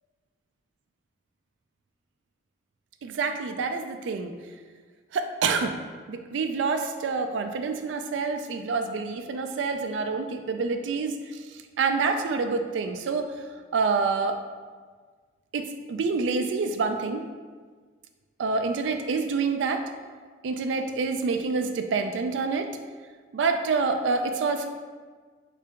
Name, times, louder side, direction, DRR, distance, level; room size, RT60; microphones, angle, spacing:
voice 1, 3.0-4.3 5.1-5.8 6.1-13.4 13.7-14.4 15.5-17.2 18.4-19.8 20.4-22.7 23.3-24.7, right 4 dB, 80° right, 7 dB, 0.3 m, -27 dB
3.3 x 2.9 x 3.4 m, 1.5 s
head